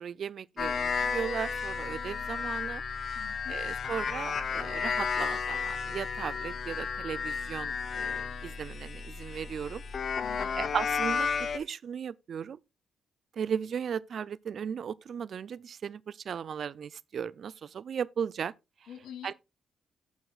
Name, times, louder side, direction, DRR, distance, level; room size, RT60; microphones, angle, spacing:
voice 1, 0.0-2.8 3.5-9.8 10.6-12.6 13.3-18.5 19.2-19.3, right 7 dB, 60° right, 0.4 m, -36 dB
sound 1, 0.6-11.6, left 6 dB, 55° left, 0.9 m, -33 dB
voice 2, 3.1-3.6 10.2-10.7 18.9-19.3, left 8 dB, 75° left, 2.9 m, -46 dB
17.5 x 5.8 x 2.4 m
supercardioid pair, 55°, 0 cm